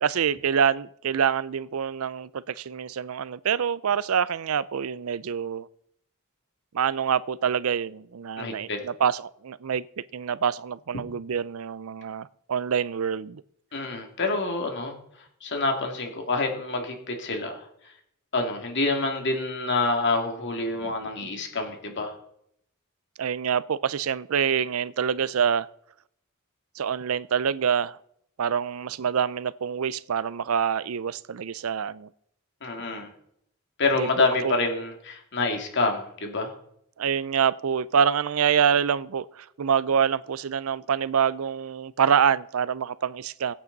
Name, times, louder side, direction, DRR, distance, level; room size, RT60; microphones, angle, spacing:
voice 1, 0.0-5.7 6.7-9.8 10.1-13.4 23.2-25.7 26.8-28.0 28.4-32.1 34.0-34.5 37.0-43.5, right 7 dB, 70° right, 0.5 m, -26 dB
voice 2, 8.4-8.8 13.7-15.0 15.4-17.6 18.3-22.1 32.6-33.1 33.8-36.5, left 3 dB, 55° left, 2.5 m, -27 dB
22.5 x 8.5 x 4.0 m
head